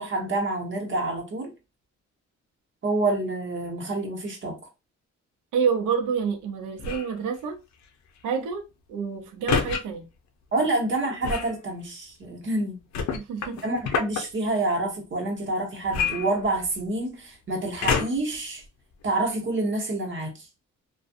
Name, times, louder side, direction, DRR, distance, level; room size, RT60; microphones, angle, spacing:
voice 1, 0.0-1.5 2.8-4.6 10.5-12.8 13.6-18.6 19.0-20.4, right 2 dB, 40° right, 1.1 m, -27 dB
voice 2, 5.5-7.6 8.2-8.6 8.9-10.1 13.1-13.6, right 6 dB, 85° right, 0.7 m, -27 dB
sound 1, 6.8-7.2 9.5-9.8 11.2-11.6 12.9-14.2 15.9-16.9 17.8-18.3 19.0-19.1, left 6 dB, 65° left, 0.6 m, -27 dB
2.5 x 2.3 x 2.5 m
cardioid pair, 90°, 30 cm